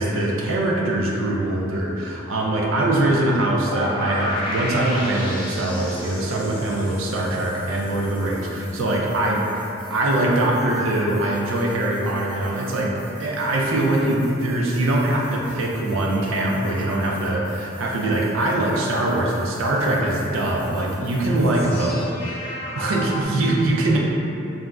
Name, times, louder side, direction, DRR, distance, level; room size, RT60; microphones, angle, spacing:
voice 1, 0.0-9.6 9.9-12.9 13.2-22.0 22.8-24.0, right 1 dB, 85° right, -2 dB, 0.4 m, -22 dB
sound 1, 3.6-23.2, equal, 25° left, 0.5 m, -37 dB
2.4 x 2.0 x 3.3 m, 2.9 s
head